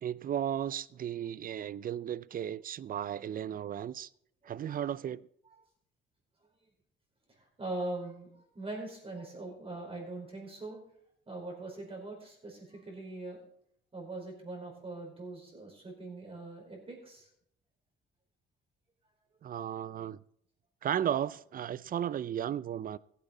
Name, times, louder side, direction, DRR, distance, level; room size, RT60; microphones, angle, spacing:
voice 1, 0.0-4.1 4.4-5.3 19.4-20.2 20.8-23.0, right 10 dB, 45° right, 0.4 m, -35 dB
voice 2, 4.4-4.8 7.6-10.8 11.3-13.4 13.9-17.3, right 2 dB, 30° right, 5.2 m, -42 dB
15.5 x 8.5 x 4.1 m
cardioid pair, 90°, 20 cm